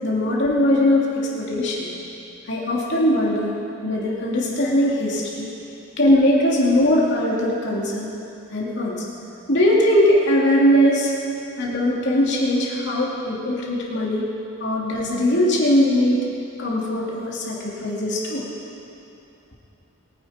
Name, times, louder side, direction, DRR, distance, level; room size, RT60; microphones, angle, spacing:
voice 1, 0.0-1.9 2.5-3.5 3.8-5.5 6.0-8.1 8.5-9.0 9.5-11.1 11.6-14.2 14.6-16.2 16.6-18.5, left 1 dB, 55° left, -4 dB, 2.8 m, -20 dB
22.5 x 10.0 x 4.4 m, 2.8 s
head